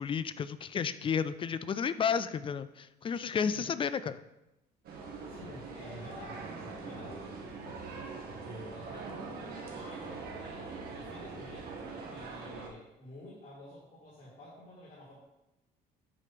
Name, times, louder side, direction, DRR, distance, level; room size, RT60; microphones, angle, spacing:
voice 1, 0.0-4.2, left 7 dB, 30° left, 14 dB, 0.4 m, -32 dB
voice 2, 3.3-3.8 5.3-7.2 8.4-15.2, left 1 dB, 55° left, -9 dB, 2.6 m, -50 dB
sound 1, 4.8-12.7, right 4 dB, 65° right, 1.5 m, -43 dB
8.5 x 3.3 x 5.8 m, 0.93 s
cardioid pair, 110°, 17 cm